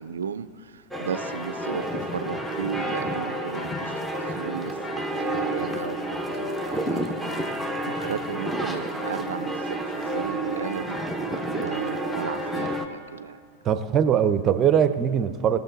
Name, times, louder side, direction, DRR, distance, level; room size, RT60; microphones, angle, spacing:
voice 1, 0.0-7.4 7.9-11.0 11.5-13.4, right 7 dB, 70° right, 13 dB, 0.4 m, -35 dB
sound 1, 0.9-12.9, right 1 dB, 5° left, 0.9 m, -30 dB
voice 2, 13.6-15.6, right 8 dB, 30° right, 12 dB, 0.6 m, -21 dB
20.5 x 7.0 x 4.0 m, 2.3 s
figure-of-eight pair, 90°, 0 cm